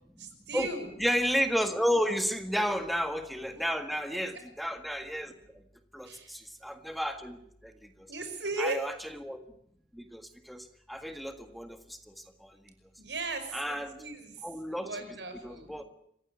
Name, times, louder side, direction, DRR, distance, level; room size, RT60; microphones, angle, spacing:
voice 1, 0.2-0.9 2.5-2.7 6.0-6.3 8.1-8.8 13.0-14.3 14.7-15.8, right 2 dB, 80° right, 8 dB, 5.5 m, -37 dB
voice 2, 1.0-5.3 5.9-7.4 7.6-7.7 8.0-8.1 8.6-9.4 9.9-11.8 12.4-12.5 13.5-14.0 14.4-14.9 15.4-15.8, equal, ahead, 7 dB, 1.7 m, -32 dB
27.0 x 16.0 x 9.7 m, 0.73 s
head